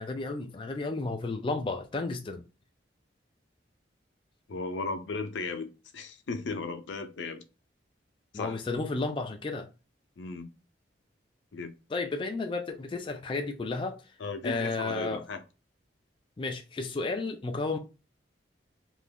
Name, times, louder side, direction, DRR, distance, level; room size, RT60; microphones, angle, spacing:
voice 1, 0.0-2.4 8.3-9.7 11.9-14.0 14.4-15.2 16.4-17.8, left 3 dB, 25° left, 0.3 m, -32 dB
voice 2, 4.5-7.4 8.3-8.6 10.2-10.5 11.5-11.7 14.2-15.4, left 3 dB, 75° left, 0.5 m, -36 dB
2.8 x 2.5 x 3.6 m
head